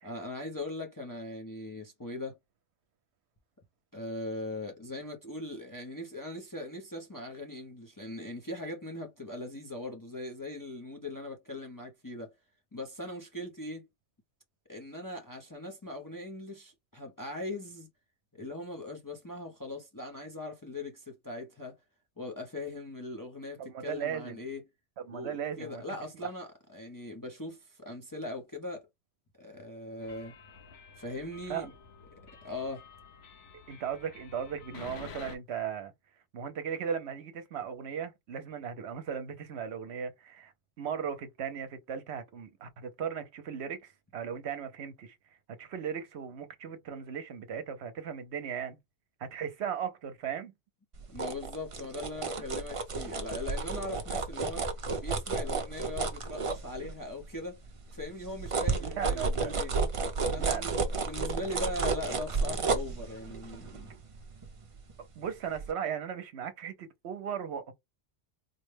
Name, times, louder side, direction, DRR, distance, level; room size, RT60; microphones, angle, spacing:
voice 1, 0.0-2.4 3.9-12.3 12.7-13.9 14.7-17.9 18.3-21.8 22.2-24.6 25.1-28.9 29.4-30.3 31.0-31.7 32.1-32.8 51.1-54.7 55.0-57.6 57.9-59.7 60.3-63.9, left 2 dB, 25° left, 0.5 m, -40 dB
voice 2, 23.6-24.4 25.1-25.8 31.5-31.7 33.7-35.9 36.3-45.2 45.6-48.8 49.2-50.5 58.8-59.6 60.4-60.8 65.2-67.7, right 8 dB, 70° right, 0.9 m, -37 dB
sound 1, 30.0-35.4, left 5 dB, 65° left, 1.0 m, -50 dB
sound 2, 50.9-57.2 57.6-65.2 65.6-65.7, right 4 dB, 40° right, 0.5 m, -32 dB
4.0 x 2.1 x 3.2 m
omnidirectional pair, 1.2 m